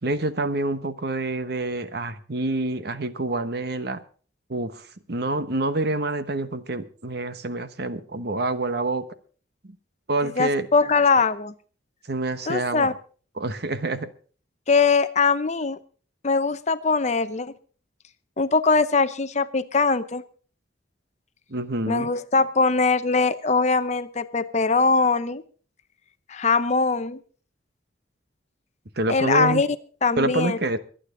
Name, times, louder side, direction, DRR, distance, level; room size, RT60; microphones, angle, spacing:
voice 1, 0.0-4.0 4.5-9.0 10.1-10.7 12.1-12.9 13.4-14.1 21.5-22.1 29.0-29.6 30.2-30.8, right 2 dB, 55° right, 11 dB, 1.1 m, -27 dB
voice 2, 10.4-11.5 12.5-12.9 14.7-15.8 16.2-17.5 18.4-20.2 21.9-25.4 26.3-27.2 29.1-29.7 30.0-30.6, left 4 dB, 35° left, 13 dB, 0.7 m, -21 dB
24.0 x 9.3 x 3.8 m, 0.40 s
head